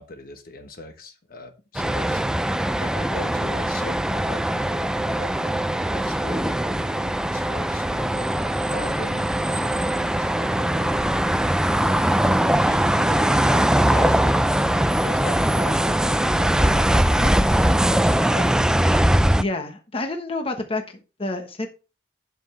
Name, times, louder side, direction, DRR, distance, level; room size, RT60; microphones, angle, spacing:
voice 1, 0.0-2.2 2.8-8.3 8.6-11.0 11.7-18.8, left 2 dB, 50° left, 7 dB, 1.2 m, -40 dB
sound 1, 1.7-19.4, right 1 dB, 5° right, 0.3 m, -21 dB
voice 2, 19.3-21.7, left 2 dB, 30° left, 5 dB, 1.1 m, -29 dB
11.5 x 5.7 x 3.3 m, 0.32 s
head